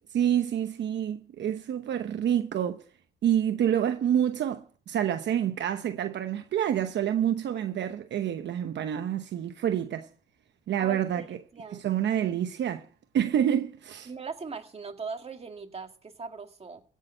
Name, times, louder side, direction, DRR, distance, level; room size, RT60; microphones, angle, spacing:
voice 1, 0.1-2.8 3.2-10.1 10.7-11.2 11.8-12.9 13.1-14.1, right 10 dB, 65° right, 1.0 m, -27 dB
voice 2, 10.8-11.3 11.5-11.9 14.1-16.8, right 5 dB, 30° right, 2.0 m, -39 dB
16.0 x 6.6 x 8.9 m
cardioid pair, 90°, 20 cm